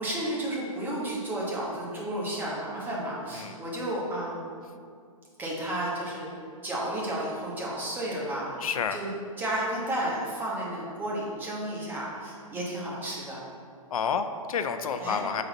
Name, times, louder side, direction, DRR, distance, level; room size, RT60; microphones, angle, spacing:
voice 1, 0.0-4.4 5.4-6.3 6.6-8.6 8.9-9.1 9.4-13.4 15.0-15.2, right 1 dB, 10° right, -5 dB, 1.1 m, -32 dB
voice 2, 8.6-9.0 13.9-15.4, left 6 dB, 80° left, 9 dB, 0.5 m, -29 dB
6.7 x 4.0 x 4.0 m, 2.2 s
hypercardioid pair, 150°, 18 cm